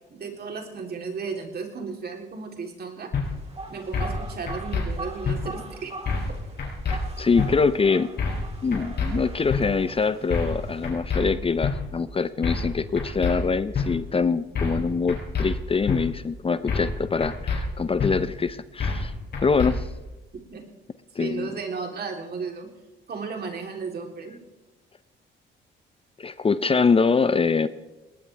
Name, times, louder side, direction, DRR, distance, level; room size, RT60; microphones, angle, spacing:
voice 1, 0.1-3.1 3.7-5.9 20.5-20.7 21.2-22.7 23.1-24.4, right 5 dB, 55° right, 2 dB, 3.5 m, -34 dB
sound 1, 3.1-3.3 3.9-4.2 4.5-4.8 5.2-5.4 6.1-6.3 6.6-7.0 7.4-7.5 8.2-8.5 8.7-9.1 9.5-9.6 10.3-10.6 10.8-11.2 11.6-11.7 12.4-12.7 13.0-13.3 13.7-13.9 14.6-14.8 15.1-15.5 15.9-16.0 16.7-16.9 17.2-17.6 18.0-18.1 18.8-19.1 19.3-19.7, left 5 dB, 55° left, 5.4 m, -26 dB
sound 2, 3.2-10.9, right 3 dB, 30° right, 3.8 m, -42 dB
voice 2, 6.9-8.1 8.6-19.1 19.4-19.9 21.1-21.5 26.2-27.7, left 5 dB, 30° left, 14 dB, 0.7 m, -24 dB
20.0 x 19.0 x 3.5 m, 1.1 s
cardioid pair, 90°, 20 cm